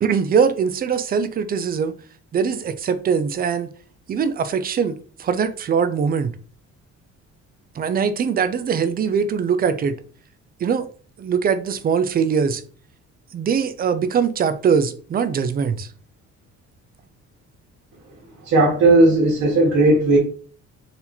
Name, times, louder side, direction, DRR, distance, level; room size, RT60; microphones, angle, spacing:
voice 1, 0.0-1.9 2.3-3.7 4.1-6.3 7.8-10.0 10.6-10.9 11.2-12.6 13.3-15.9, right 6 dB, 30° right, 0.4 m, -22 dB
voice 2, 18.4-20.2, right 2 dB, 75° right, 1.4 m, -15 dB
4.0 x 2.8 x 4.1 m
cardioid pair, 170°, 29 cm